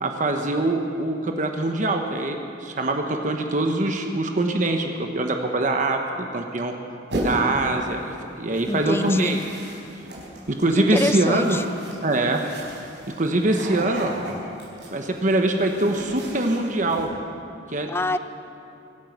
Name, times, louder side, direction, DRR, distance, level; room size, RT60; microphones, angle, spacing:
voice 1, 0.0-6.7 7.2-9.4 10.5-11.6 12.0-12.4 13.2-14.2 14.9-17.1 17.7-17.9, right 2 dB, 45° right, 4 dB, 1.0 m, -23 dB
sound 1, 7.1-7.7 8.5-17.1, right 1 dB, 75° right, 4.6 m, -35 dB
voice 2, 8.7-9.4 10.8-11.6 17.9-18.2, left 2 dB, 15° left, 11 dB, 0.4 m, -25 dB
24.0 x 9.2 x 6.0 m, 2.7 s
head